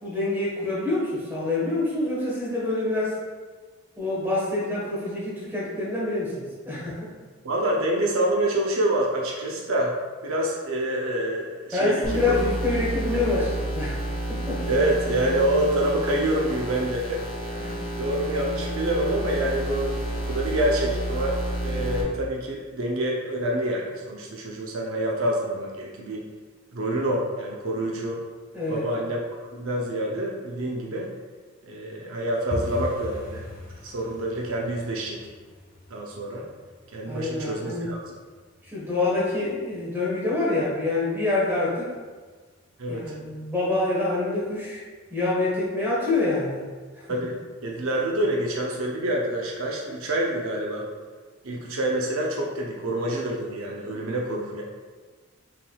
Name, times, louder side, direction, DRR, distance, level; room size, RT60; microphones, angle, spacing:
voice 1, 0.0-3.2 4.0-7.1 11.7-14.0 14.3-14.6 17.6-17.9 28.5-28.9 37.0-37.9 38.7-41.9 42.9-44.8 45.1-46.6 46.9-47.1, left 2 dB, 10° right, -6 dB, 1.2 m, -26 dB
voice 2, 7.4-10.0 10.2-12.3 13.1-13.2 14.7-17.2 18.0-26.3 26.7-28.2 28.7-29.2 29.5-31.1 31.6-33.4 33.8-35.2 35.9-36.5 36.9-38.0 42.8-43.1 47.1-50.9 51.4-54.6, right 1 dB, 70° right, -1 dB, 0.6 m, -27 dB
sound 1, 12.0-22.0, right 1 dB, 75° left, 1.3 m, -30 dB
sound 2, 32.5-43.2 43.5-44.2 44.4-44.7 45.0-45.4 45.7-45.8 46.3-46.8 47.2-47.3 47.8-47.9, left 1 dB, 40° left, 0.8 m, -42 dB
5.7 x 3.6 x 2.3 m, 1.4 s
head